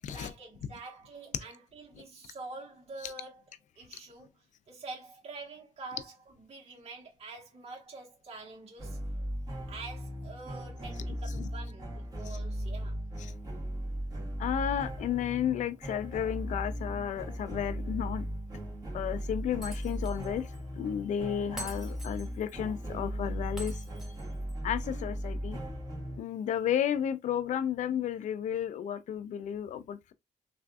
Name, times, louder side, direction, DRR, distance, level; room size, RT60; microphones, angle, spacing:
voice 1, 0.1-3.4 3.8-4.3 4.7-9.0 9.7-13.0, right 3 dB, 50° right, 1.3 m, -46 dB
sound 1, 8.8-26.2, equal, 30° right, 1.7 m, -37 dB
voice 2, 14.4-18.3 18.9-20.5 20.8-23.7 24.6-25.6 26.2-30.1, left 9 dB, 70° left, 0.4 m, -32 dB
Shatter, 19.6-20.3 20.5-20.6 21.6-22.6 23.6-24.5, right 1 dB, 5° right, 1.5 m, -45 dB
3.3 x 2.5 x 2.3 m
cardioid pair, 80°, 13 cm